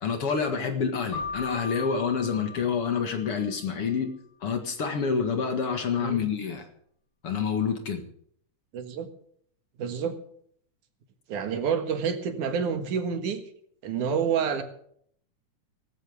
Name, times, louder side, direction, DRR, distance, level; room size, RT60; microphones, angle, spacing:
voice 1, 0.0-4.1 4.4-6.7 7.2-8.0, left 6 dB, 50° left, 6 dB, 2.4 m, -28 dB
Keyboard (musical), 1.1-3.7, left 5 dB, 70° left, 8.1 m, -38 dB
voice 2, 8.7-9.1 9.8-10.2 11.3-13.4 13.8-14.6, right 7 dB, 75° right, 8 dB, 3.1 m, -28 dB
18.5 x 15.0 x 3.6 m, 0.64 s
omnidirectional pair, 3.6 m